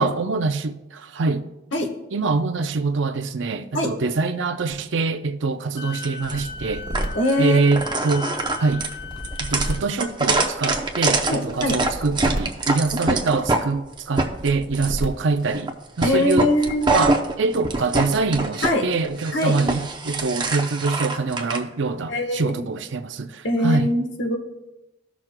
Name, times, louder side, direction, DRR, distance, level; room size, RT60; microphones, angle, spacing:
voice 1, 0.0-1.5 2.1-6.8 7.4-8.3 8.6-8.9 9.4-16.5 16.9-24.0, right 3 dB, 70° right, 0.5 m, -24 dB
Wind instrument woodwind instrument, 5.8-9.8, left 4 dB, 25° left, 0.4 m, -38 dB
sound 1, 6.0-6.3 6.9-7.3 7.7-13.6 14.0-15.0 15.5-15.7 16.0-18.7 19.0-21.6, right 3 dB, 20° right, 0.6 m, -24 dB
sound 2, 6.2-8.2 8.9-10.8 11.5-13.5 14.2-15.5, right 1 dB, 45° right, 1.4 m, -33 dB
voice 2, 7.1-7.8 11.3-11.8 12.9-13.2 16.0-17.1 18.6-18.8 19.3-19.5 22.1-22.7 23.4-24.3, left 1 dB, 65° left, 1.3 m, -22 dB
15.0 x 6.1 x 2.2 m
head